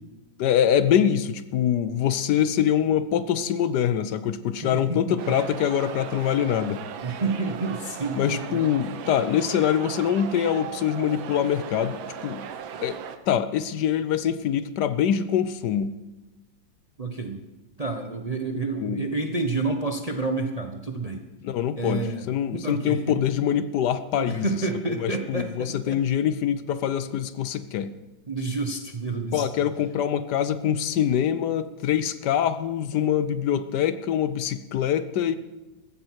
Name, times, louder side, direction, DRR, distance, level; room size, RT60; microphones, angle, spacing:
voice 1, 0.4-6.8 8.1-12.4 12.8-13.0 13.3-15.9 18.5-19.0 21.4-24.5 25.0-27.9 29.3-35.4, left 9 dB, 70° left, 13 dB, 1.2 m, -24 dB
voice 2, 4.6-5.4 7.0-8.6 17.0-17.4 17.8-21.2 21.7-22.3 22.5-23.2 24.2-26.0 28.3-29.5, right 3 dB, 35° right, 5 dB, 0.6 m, -29 dB
sound 1, 5.2-13.2, right 8 dB, 85° right, 1.7 m, -38 dB
15.0 x 14.0 x 4.6 m, 1.1 s
omnidirectional pair, 2.1 m